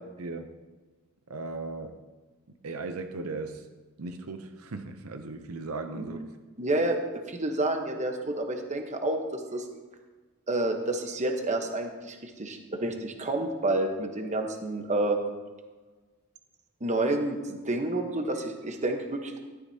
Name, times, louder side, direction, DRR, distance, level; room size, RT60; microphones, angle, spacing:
voice 1, 0.2-0.5 1.3-2.0 2.6-3.7 4.0-6.2, right 3 dB, 75° right, 7 dB, 0.7 m, -37 dB
voice 2, 6.6-9.6 10.5-15.2 16.8-19.4, right 2 dB, 35° right, 4 dB, 1.1 m, -29 dB
13.5 x 12.5 x 2.8 m, 1.3 s
head